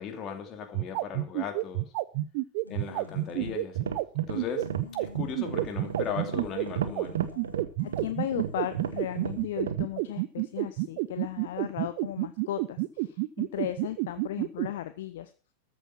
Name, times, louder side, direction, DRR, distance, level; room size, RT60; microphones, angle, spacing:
voice 1, 0.0-1.8 2.7-3.9 4.3-4.7 5.0-7.2, left 7 dB, 30° left, 5 dB, 2.7 m, -37 dB
sound 1, 0.6-14.7, right 22 dB, 45° right, 0.6 m, -29 dB
sound 2, 2.6-3.8 4.3-9.5, left 3 dB, 80° left, 2.4 m, -47 dB
sound 3, 3.3-9.9, right 7 dB, 65° right, 1.2 m, -35 dB
voice 2, 8.0-15.3, left 12 dB, 55° left, 12 dB, 0.7 m, -36 dB
14.0 x 7.8 x 6.0 m, 0.39 s
figure-of-eight pair, 90°, 0 cm